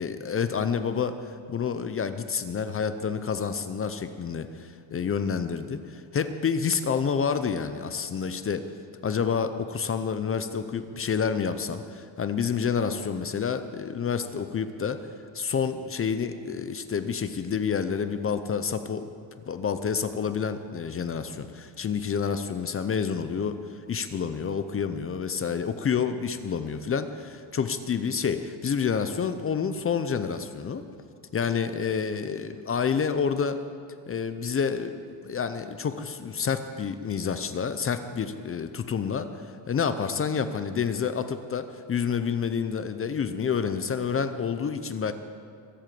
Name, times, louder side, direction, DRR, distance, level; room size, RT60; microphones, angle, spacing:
voice 1, 0.0-8.7 9.0-15.1 15.3-19.1 19.5-30.8 31.3-33.6 34.1-45.1, left 6 dB, 25° left, 10 dB, 0.7 m, -29 dB
23.0 x 8.1 x 7.6 m, 2.3 s
cardioid pair, 145°, 49 cm